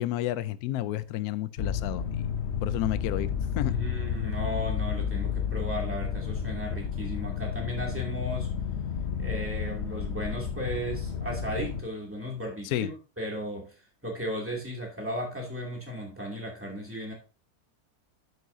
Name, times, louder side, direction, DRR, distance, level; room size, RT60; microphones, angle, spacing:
voice 1, 0.0-2.3 2.6-3.3 3.6-3.7 12.6-12.9, left 13 dB, 80° left, 1.1 m, -31 dB
sound 1, 1.6-11.8, left 7 dB, 55° left, 0.9 m, -31 dB
voice 2, 3.7-8.5 9.2-13.7 14.0-17.1, equal, 10° right, 2.5 m, -35 dB
9.4 x 8.0 x 2.7 m
omnidirectional pair, 1.6 m